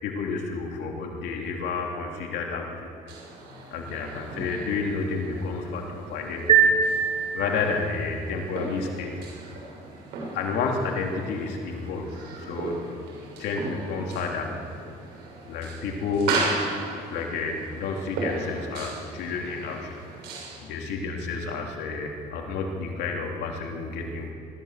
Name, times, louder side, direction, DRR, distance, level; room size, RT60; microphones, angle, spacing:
voice 1, 0.0-2.9 3.7-6.7 7.3-9.1 10.3-12.7 13.4-14.5 15.5-16.4 17.1-20.0 20.6-24.3, left 4 dB, 85° left, 0 dB, 3.3 m, -30 dB
sound 1, 3.1-20.6, right 3 dB, 90° right, 6.9 m, -36 dB
sound 2, 6.5-8.0, right 6 dB, 35° right, 3.2 m, -22 dB
23.0 x 14.5 x 7.7 m, 2.6 s
cardioid pair, 110°, 17 cm